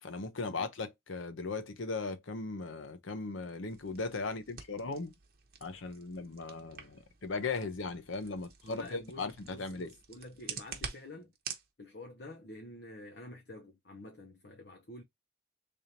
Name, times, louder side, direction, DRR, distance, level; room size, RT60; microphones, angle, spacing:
voice 1, 0.0-5.1 5.6-9.9, left 3 dB, 85° left, 0.8 m, -38 dB
sound 1, 3.7-11.7, right 6 dB, 50° right, 0.9 m, -48 dB
voice 2, 8.6-11.3 11.8-15.0, left 1 dB, 55° left, 0.9 m, -49 dB
3.5 x 2.5 x 4.3 m
head